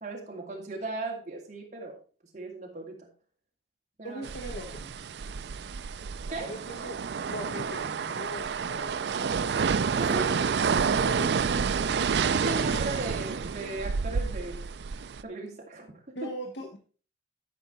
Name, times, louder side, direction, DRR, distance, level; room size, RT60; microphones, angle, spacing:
voice 1, 0.0-2.0 2.3-3.1 4.0-4.2 6.3-6.5 9.9-10.4 12.3-14.6 15.2-16.3, right 2 dB, 40° right, -1 dB, 2.4 m, -37 dB
voice 2, 4.0-4.9 6.4-7.0 7.3-9.6 9.9-10.4 10.9-12.0 16.1-16.8, equal, 85° left, 2 dB, 1.3 m, -41 dB
sound 1, 4.2-15.2, right 6 dB, 70° right, 0.4 m, -29 dB
12.0 x 5.4 x 4.1 m, 0.38 s
head